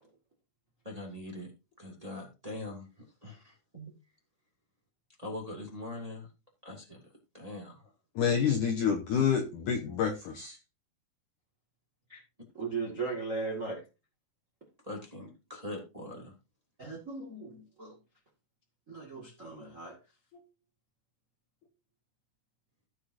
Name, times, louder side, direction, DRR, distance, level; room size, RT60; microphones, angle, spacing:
voice 1, 0.8-1.5 1.8-2.9 3.2-3.9 5.2-6.3 6.6-7.0 7.3-7.9 14.8-16.3, left 1 dB, 10° right, 1.7 m, -42 dB
voice 2, 8.2-10.6, left 7 dB, 70° left, 2.0 m, -28 dB
voice 3, 12.5-13.8 16.8-18.0 18.9-20.0, right 4 dB, 35° right, 1.3 m, -37 dB
16.0 x 6.5 x 2.7 m
omnidirectional pair, 5.0 m